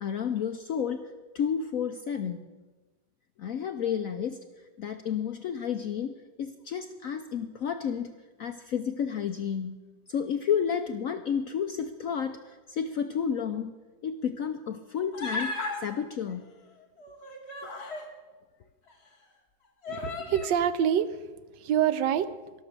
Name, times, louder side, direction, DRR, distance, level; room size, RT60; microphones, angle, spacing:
voice 1, 0.0-2.4 3.4-4.4 4.8-8.1 8.4-9.8 10.1-13.7 14.0-16.5, left 7 dB, 75° left, 7 dB, 0.8 m, -31 dB
Human voice, 15.1-15.8 17.0-18.1 18.9-19.0 19.8-20.5, left 2 dB, 35° left, 2.2 m, -35 dB
voice 2, 19.9-21.3 21.6-22.4, right 9 dB, 70° right, 13 dB, 1.2 m, -26 dB
13.0 x 12.0 x 6.6 m, 1.3 s
omnidirectional pair, 2.1 m